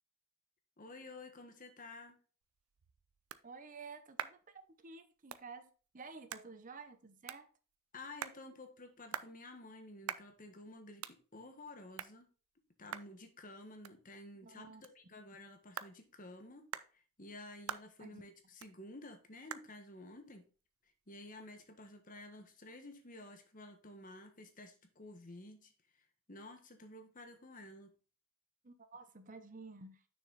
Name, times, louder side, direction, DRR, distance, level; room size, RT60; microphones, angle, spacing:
voice 1, 0.8-2.2 7.9-12.3 12.8-16.6 16.9-20.4 21.1-25.7 26.3-27.9, left 2 dB, 40° left, 1.4 m, -52 dB
sound 1, 2.4-21.7, right 9 dB, 80° right, 0.5 m, -50 dB
voice 2, 3.4-4.4 4.8-7.5 14.4-14.8 18.0-18.2 28.6-30.0, right 4 dB, 40° right, 0.7 m, -52 dB
6.6 x 6.2 x 4.0 m
head